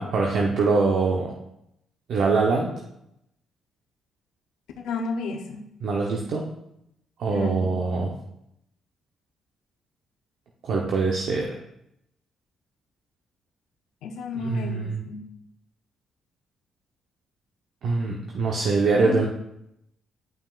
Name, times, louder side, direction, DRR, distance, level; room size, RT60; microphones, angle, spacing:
voice 1, 0.0-1.3 2.1-2.7 5.8-6.5 7.2-8.1 10.6-11.6 14.3-15.0 17.8-19.3, right 4 dB, 70° right, -1 dB, 0.9 m, -23 dB
voice 2, 4.8-5.7 7.3-7.6 14.0-15.3 19.0-19.3, left 4 dB, 85° left, 3 dB, 0.7 m, -32 dB
9.3 x 5.8 x 2.5 m, 0.81 s
cardioid pair, 90°, 0 cm